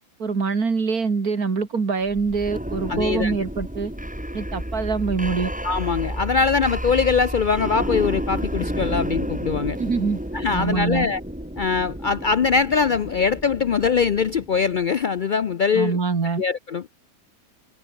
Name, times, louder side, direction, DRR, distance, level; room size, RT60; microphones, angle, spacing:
voice 1, 0.2-3.9 4.3-5.5 9.8-10.2 10.5-11.1 15.7-16.4, right 4 dB, 85° right, 3.0 m, -24 dB
sound 1, 2.1-14.8, equal, 5° right, 2.8 m, -31 dB
voice 2, 2.9-3.4 5.6-9.8 10.3-11.2 11.6-16.0 16.4-16.8, left 5 dB, 65° left, 0.4 m, -22 dB
omnidirectional pair, 1.5 m